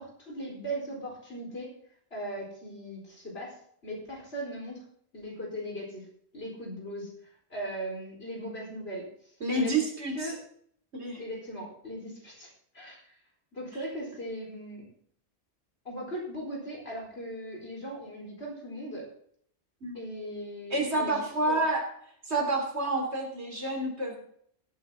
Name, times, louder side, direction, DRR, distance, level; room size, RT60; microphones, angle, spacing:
voice 1, 0.0-1.7 2.1-3.6 3.8-4.8 5.1-6.0 6.3-7.1 7.5-9.1 9.5-9.8 10.1-10.4 11.2-13.2 13.5-14.9 15.8-19.1 19.9-21.6, right 1 dB, 70° left, -2 dB, 4.6 m, -38 dB
voice 2, 9.4-10.3 10.9-11.2 19.8-20.0 20.7-21.8 22.3-24.2, right 2 dB, 85° right, 1 dB, 3.5 m, -29 dB
17.0 x 9.0 x 3.8 m, 0.64 s
omnidirectional pair, 1.1 m